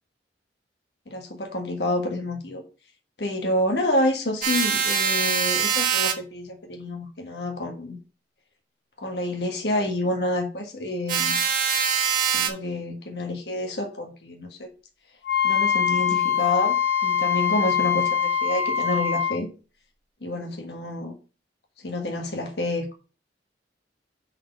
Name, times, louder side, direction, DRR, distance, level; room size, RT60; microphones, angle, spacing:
voice 1, 1.1-2.6 3.2-8.0 9.0-11.4 12.3-14.7 15.4-16.7 17.0-19.5 20.2-21.1 21.8-22.9, left 1 dB, 65° left, 1.5 m, -28 dB
sound 1, 4.4-6.1 11.1-12.5, right 7 dB, 50° right, 1.4 m, -23 dB
Wind instrument woodwind instrument, 15.2-19.4, left 8 dB, 90° left, 2.8 m, -23 dB
6.4 x 4.2 x 5.4 m
head